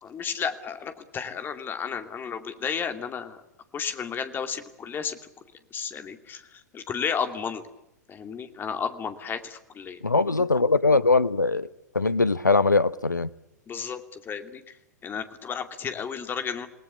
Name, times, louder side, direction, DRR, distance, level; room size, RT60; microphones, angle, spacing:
voice 1, 0.0-3.4 3.7-5.2 5.7-7.7 8.1-10.0 13.7-14.7 15.0-16.7, left 7 dB, 20° left, 9 dB, 2.6 m, -33 dB
voice 2, 10.0-11.7 11.9-13.3, left 3 dB, 85° left, 17 dB, 0.9 m, -21 dB
28.0 x 19.5 x 8.4 m, 0.88 s
figure-of-eight pair, 95°, 10 cm